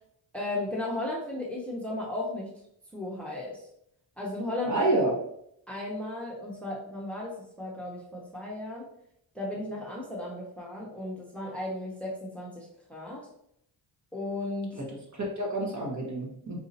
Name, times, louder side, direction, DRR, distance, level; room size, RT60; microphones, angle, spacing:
voice 1, 0.3-2.5 2.9-3.6 4.2-4.8 5.7-8.9 9.3-13.3 14.1-14.7, left 1 dB, 5° left, -3 dB, 0.9 m, -35 dB
voice 2, 4.6-5.1 14.8-14.9 15.1-16.6, right 2 dB, 35° right, -2 dB, 1.3 m, -28 dB
4.0 x 2.7 x 2.7 m, 0.72 s
cardioid pair, 65°, 48 cm